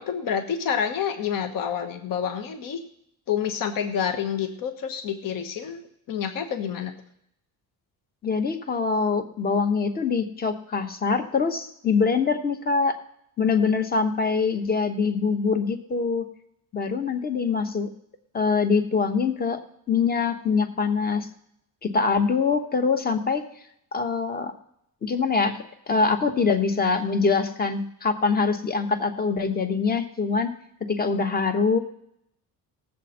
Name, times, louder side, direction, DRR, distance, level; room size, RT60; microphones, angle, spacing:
voice 1, 0.0-2.8 3.3-5.8 6.1-6.9, left 8 dB, 60° left, 6 dB, 1.2 m, -28 dB
voice 2, 8.2-12.9 13.4-16.3 16.7-17.9 18.3-19.6 19.9-21.3 21.8-23.4 23.9-24.5 25.0-25.6 25.9-30.5 30.9-31.8, left 5 dB, 25° left, 8 dB, 1.0 m, -24 dB
18.5 x 7.5 x 4.3 m, 0.74 s
cardioid pair, 150°, 37 cm